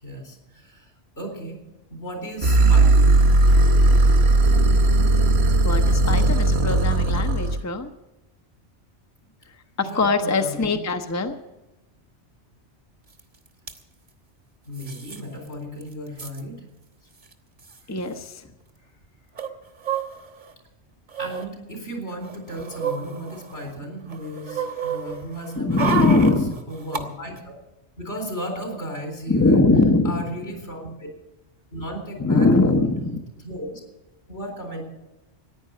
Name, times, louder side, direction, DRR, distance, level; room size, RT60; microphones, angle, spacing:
voice 1, 0.0-0.9 1.2-1.6 1.9-3.2 9.8-10.8 14.7-16.6 21.2-26.4 26.7-27.5 28.0-29.6 30.0-31.1 31.7-32.9 33.4-33.8 34.3-34.9, equal, 75° left, 2 dB, 4.3 m, -35 dB
sound 1, 2.4-7.6, right 2 dB, 70° right, 1.3 m, -17 dB
voice 2, 5.6-7.9 9.5-11.4 17.9-18.5 25.6-26.5 29.3-30.2 32.2-33.2, left 3 dB, 15° left, 6 dB, 0.8 m, -21 dB
sound 2, 13.2-13.3 13.5-13.8 14.8-15.2 15.5-15.6 15.8-16.4 17.3-17.4 17.6-17.8 19.4-20.5 21.1-21.5 22.1-23.7 24.1-27.0 27.4-27.5, right 6 dB, 45° right, 1.4 m, -30 dB
14.5 x 10.0 x 7.6 m, 1.0 s
omnidirectional pair, 1.2 m